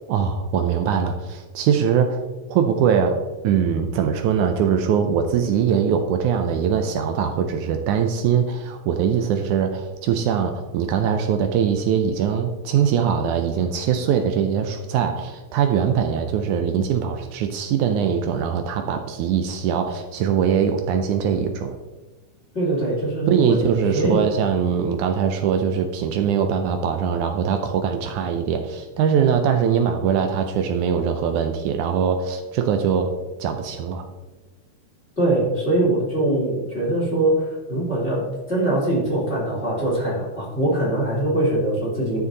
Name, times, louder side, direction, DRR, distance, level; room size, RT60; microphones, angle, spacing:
voice 1, 0.1-2.2 2.5-21.8 23.3-33.1 33.4-34.1, right 7 dB, 80° right, 6 dB, 2.1 m, -22 dB
voice 2, 22.5-24.2 35.2-42.2, right 1 dB, 20° left, -4 dB, 3.6 m, -22 dB
12.0 x 6.9 x 4.0 m, 1.2 s
omnidirectional pair, 3.7 m